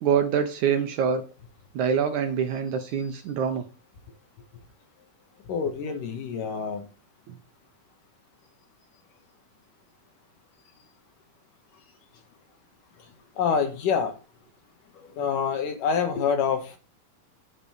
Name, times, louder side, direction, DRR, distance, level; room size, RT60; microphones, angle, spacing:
voice 1, 0.0-1.2 1.8-3.6, right 7 dB, 70° right, 6 dB, 2.1 m, -25 dB
voice 2, 5.5-6.9 13.4-14.1 15.0-16.8, left 6 dB, 70° left, 6 dB, 3.0 m, -26 dB
9.9 x 4.2 x 7.0 m, 0.32 s
omnidirectional pair, 4.1 m